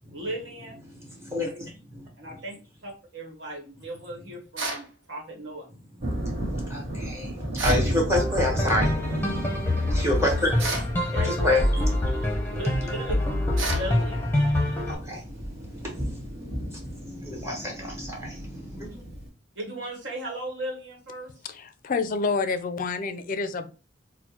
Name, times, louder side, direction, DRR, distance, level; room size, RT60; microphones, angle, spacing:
voice 1, 0.1-0.9 2.2-5.7 11.1-11.6 12.5-13.2 13.7-14.2 19.5-21.3, right 1 dB, 70° right, -1 dB, 1.2 m, -36 dB
voice 2, 1.2-2.0 6.7-8.9 9.7-11.6 14.6-18.9, left 1 dB, 15° right, -1 dB, 0.9 m, -29 dB
sound 1, 4.6-4.9 7.6-7.9 10.6-10.9 13.6-13.9, right 3 dB, 85° right, 0.8 m, -30 dB
Thunder, 6.0-19.3, equal, 35° right, 1.4 m, -34 dB
sound 2, 8.1-14.9, left 1 dB, 10° left, 0.7 m, -26 dB
voice 3, 21.4-23.7, left 4 dB, 45° left, 10 dB, 0.4 m, -28 dB
4.3 x 2.1 x 2.8 m, 0.36 s
head